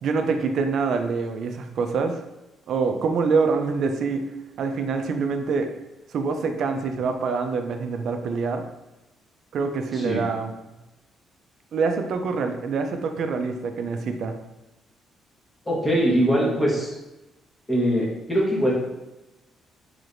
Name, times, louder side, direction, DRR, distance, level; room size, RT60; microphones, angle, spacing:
voice 1, 0.0-2.2 2.7-4.3 4.6-5.7 6.1-8.6 9.5-10.5 11.7-14.4, right 4 dB, 55° right, 6 dB, 0.4 m, -25 dB
voice 2, 9.9-10.2 15.7-16.9 17.7-18.7, equal, 10° left, -4 dB, 0.9 m, -22 dB
3.3 x 3.2 x 2.5 m, 1.0 s
cardioid pair, 155°, 0 cm